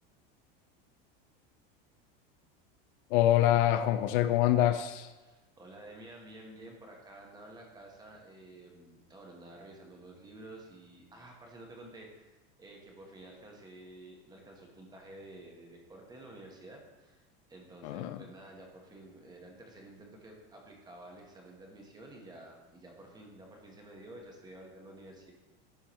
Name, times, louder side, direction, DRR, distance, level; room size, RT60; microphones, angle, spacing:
voice 1, 3.1-5.1 17.8-18.2, left 12 dB, 65° left, 0.4 m, -25 dB
voice 2, 5.2-17.2 17.5-25.3, right 1 dB, 15° right, 1.2 m, -51 dB
11.5 x 4.6 x 3.1 m
supercardioid pair, 145°, 29 cm